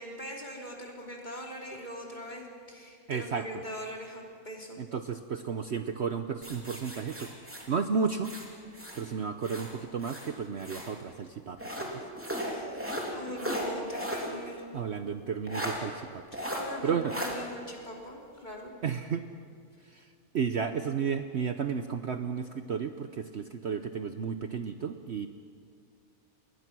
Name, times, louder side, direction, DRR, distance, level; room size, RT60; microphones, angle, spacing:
voice 1, 0.0-4.8 12.4-12.8 13.1-14.7 16.3-18.7, equal, 30° left, -1 dB, 3.5 m, -41 dB
voice 2, 3.1-3.4 4.8-7.3 7.7-8.3 8.9-12.0 14.7-16.2 16.8-17.1 18.8-19.2 19.9-20.1 20.3-25.3, right 6 dB, 55° right, 8 dB, 1.0 m, -33 dB
sound 1, 6.4-9.1 9.4-11.0 11.6-14.3 14.7-14.8 15.5-15.8 16.3-16.6 17.1-17.3, equal, 10° right, 3.3 m, -36 dB
29.0 x 21.0 x 6.1 m, 2.2 s
omnidirectional pair, 1.5 m